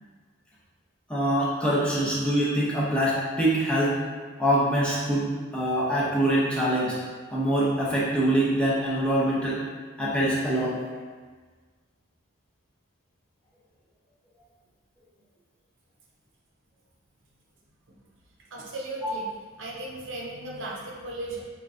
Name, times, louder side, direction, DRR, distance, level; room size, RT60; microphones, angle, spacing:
voice 1, 1.1-4.0 4.4-7.0 7.3-9.6 10.0-10.8 19.0-19.1, right 1 dB, 5° left, -8 dB, 0.7 m, -24 dB
voice 2, 18.5-19.3 19.6-21.4, right 2 dB, 65° right, -3 dB, 0.8 m, -36 dB
4.7 x 3.2 x 2.6 m, 1.5 s
head